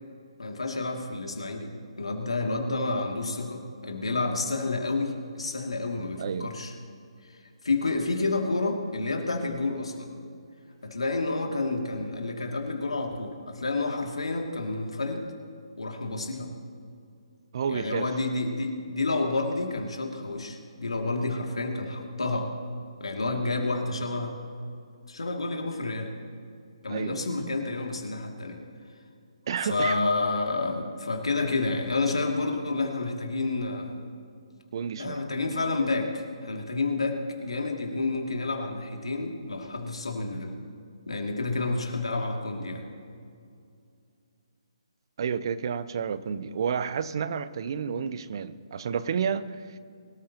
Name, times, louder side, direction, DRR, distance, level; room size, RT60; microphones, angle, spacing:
voice 1, 0.4-1.7 2.0-6.7 7.3-7.4 7.6-10.1 10.8-15.3 15.8-16.5 17.7-22.5 23.0-24.3 25.1-26.1 26.8-28.6 29.6-33.9 35.0-40.5 41.1-42.9, left 3 dB, 75° left, 2.6 m, -29 dB
voice 2, 6.2-6.5 17.5-18.1 26.9-27.4 29.5-30.0 34.7-35.2 45.2-49.8, right 7 dB, 50° right, 0.7 m, -30 dB
23.0 x 13.5 x 3.0 m
figure-of-eight pair, 140°, 3 cm